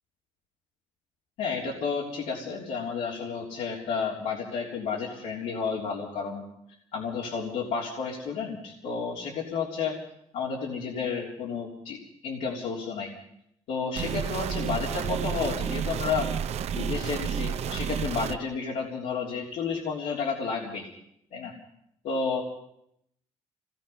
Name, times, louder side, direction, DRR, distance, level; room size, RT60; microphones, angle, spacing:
voice 1, 1.4-6.4 6.9-10.0 10.3-13.1 13.7-16.3 16.7-20.9 21.3-21.5 22.0-22.4, left 5 dB, 90° left, -3 dB, 3.4 m, -31 dB
sound 1, 14.0-18.4, right 8 dB, 65° right, 0.8 m, -31 dB
26.0 x 19.0 x 5.6 m, 0.76 s
cardioid pair, 125°, 12 cm